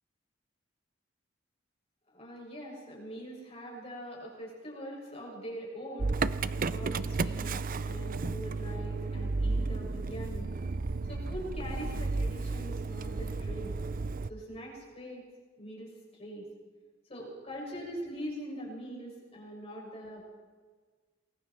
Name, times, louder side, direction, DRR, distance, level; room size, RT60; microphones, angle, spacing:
voice 1, 2.1-6.2 6.5-10.5 11.0-13.8 14.3-15.3 15.6-16.5 17.1-20.2, equal, 30° left, -2 dB, 7.0 m, -42 dB
Motor vehicle (road) / Engine starting, 6.0-14.3, right 3 dB, 45° right, 0.6 m, -33 dB
28.0 x 21.5 x 4.6 m, 1.5 s
head